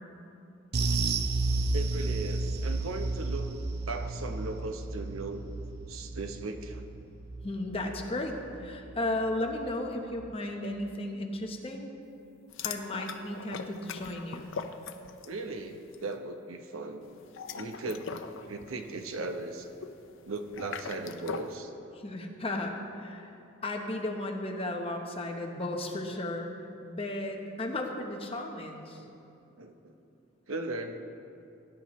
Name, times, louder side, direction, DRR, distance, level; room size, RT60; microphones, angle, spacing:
sound 1, 0.7-9.4 9.7-9.9 10.3-10.4, right 3 dB, 50° right, 0.5 m, -33 dB
voice 1, 1.7-3.5 3.9-5.5 5.9-6.8 9.0-9.1 15.2-17.0 17.5-18.1 18.5-19.7 20.2-21.7 28.9-29.1 29.6-29.9 30.5-31.0, right 2 dB, 85° right, 5 dB, 0.9 m, -37 dB
voice 2, 7.4-11.9 12.6-14.5 21.9-26.5 26.8-29.0, left 1 dB, 25° left, 2 dB, 0.9 m, -35 dB
sound 2, 12.5-15.4 15.7-16.0 17.2-21.6, left 5 dB, 65° left, 0.6 m, -41 dB
18.0 x 10.0 x 3.1 m, 2.7 s
head